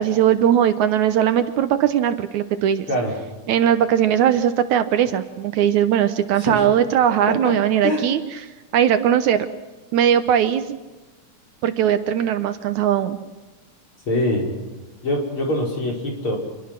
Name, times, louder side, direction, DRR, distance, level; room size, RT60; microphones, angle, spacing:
voice 1, 0.0-2.9 3.5-8.2 8.7-9.5 9.9-10.7 11.6-13.2, right 9 dB, 75° right, 10 dB, 2.2 m, -19 dB
voice 2, 14.1-14.5 15.0-16.4, left 1 dB, 40° left, 0 dB, 5.4 m, -23 dB
27.0 x 22.5 x 6.0 m, 1.2 s
omnidirectional pair, 3.6 m